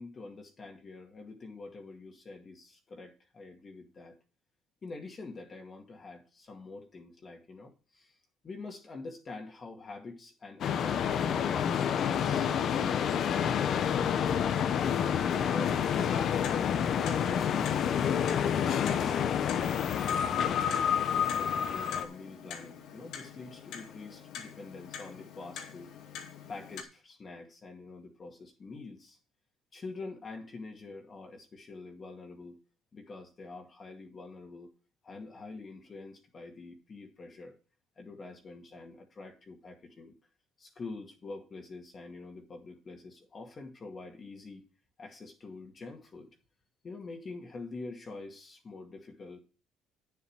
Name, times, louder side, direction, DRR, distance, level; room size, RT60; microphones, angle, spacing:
voice 1, 0.0-4.2 4.8-8.1 8.4-12.5 15.3-18.2 18.8-20.9 21.3-25.9 26.5-29.2 29.7-32.6 32.9-34.7 35.0-37.5 38.0-40.1 40.6-44.6 45.0-46.3 46.8-49.4, left 3 dB, 30° left, 2 dB, 2.1 m, -46 dB
sound 1, 10.6-22.1, left 8 dB, 55° left, 0.9 m, -28 dB
Clock, 15.9-26.8, left 7 dB, 70° left, 2.2 m, -46 dB
9.3 x 7.3 x 4.6 m, 0.36 s
cardioid pair, 105°, 0 cm